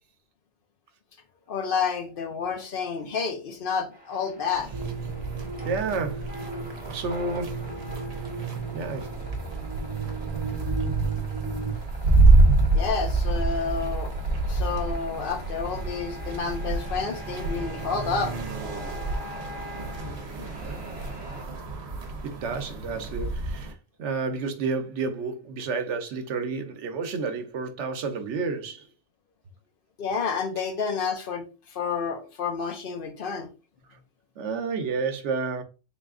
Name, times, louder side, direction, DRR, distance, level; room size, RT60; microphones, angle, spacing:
voice 1, 1.5-4.7 12.7-14.1 14.5-18.3 30.0-33.5, left 5 dB, 55° left, 0.9 m, -30 dB
sound 1, 3.9-21.4, equal, 10° right, 1.1 m, -45 dB
sound 2, 4.5-23.7, right 2 dB, 65° right, 1.2 m, -27 dB
sound 3, 4.7-11.7, right 5 dB, 30° right, 0.7 m, -34 dB
voice 2, 5.7-6.3 6.8-7.7 8.7-9.2 22.2-23.7 24.0-28.9 33.9-34.0 34.4-35.6, right 4 dB, 85° right, 1.0 m, -30 dB
3.9 x 2.4 x 3.6 m
omnidirectional pair, 1.2 m